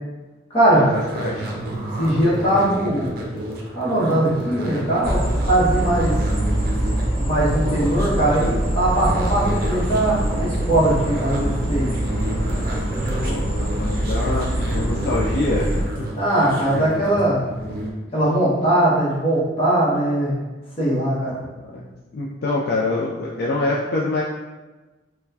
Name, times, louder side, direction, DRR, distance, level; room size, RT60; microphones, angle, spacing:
voice 1, 0.5-0.9 2.0-3.1 3.7-6.2 7.2-11.9 16.1-17.4 18.1-20.3 20.8-21.4, right 1 dB, 30° left, -7 dB, 0.9 m, -20 dB
sound 1, 0.9-17.9, right 1 dB, 55° right, 0.5 m, -30 dB
voice 2, 1.1-1.5 13.2-16.1 21.3-21.8 22.1-24.2, left 2 dB, 60° left, -4 dB, 0.4 m, -25 dB
sound 2, 5.0-15.8, right 1 dB, 20° right, 1.1 m, -24 dB
4.2 x 2.2 x 2.7 m, 1.2 s
head